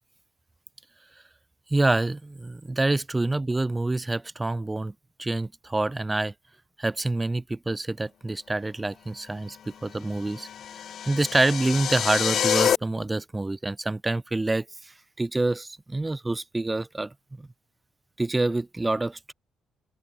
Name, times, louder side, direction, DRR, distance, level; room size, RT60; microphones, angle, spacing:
voice 1, 1.7-4.9 5.2-6.3 6.8-9.6 9.8-10.5 11.1-14.9 15.2-17.5 18.2-19.3, right 2 dB, 15° right, 1.6 m, -27 dB
sound 1, 10.2-12.8, left 9 dB, 65° left, 2.2 m, -27 dB
open air
cardioid pair, 90°, 0 cm